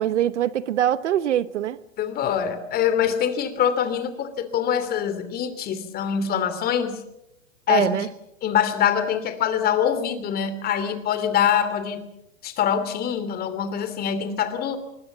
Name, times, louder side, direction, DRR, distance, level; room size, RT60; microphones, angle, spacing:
voice 1, 0.0-1.8 7.7-8.1, right 11 dB, 65° right, 1.1 m, -23 dB
voice 2, 2.0-7.0 7.7-7.9 8.4-12.1 12.4-14.8, left 8 dB, 25° left, 2.9 m, -24 dB
24.5 x 21.5 x 7.2 m
hypercardioid pair, 130°, 38 cm